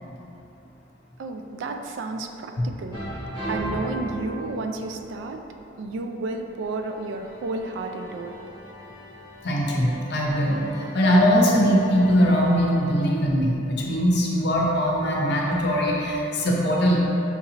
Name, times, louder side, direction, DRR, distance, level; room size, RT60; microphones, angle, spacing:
voice 1, 1.2-3.0 3.5-5.4 5.8-8.4, right 3 dB, 75° right, 5 dB, 0.3 m, -31 dB
sound 1, 2.9-5.3 6.5-13.2 14.2-16.2, equal, 20° right, 1.1 m, -39 dB
voice 2, 9.4-17.0, equal, 60° left, -2 dB, 0.6 m, -21 dB
5.9 x 2.8 x 2.8 m, 3.0 s
head